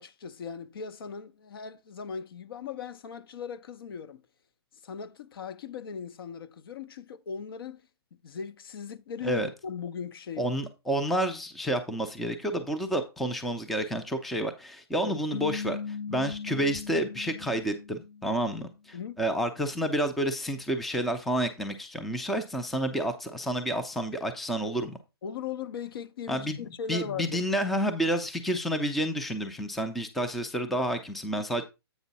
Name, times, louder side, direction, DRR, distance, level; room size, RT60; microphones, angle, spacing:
voice 1, 0.0-4.2 4.8-7.9 8.2-10.5 15.0-15.1 18.9-19.2 25.2-27.4, left 6 dB, 60° left, 0.8 m, -38 dB
voice 2, 10.4-25.0 26.3-26.6 26.9-31.6, right 1 dB, ahead, 0.4 m, -30 dB
sound 1, 15.3-18.6, left 6 dB, 85° left, 1.5 m, -38 dB
8.1 x 5.4 x 4.0 m
hypercardioid pair, 160°, 14 cm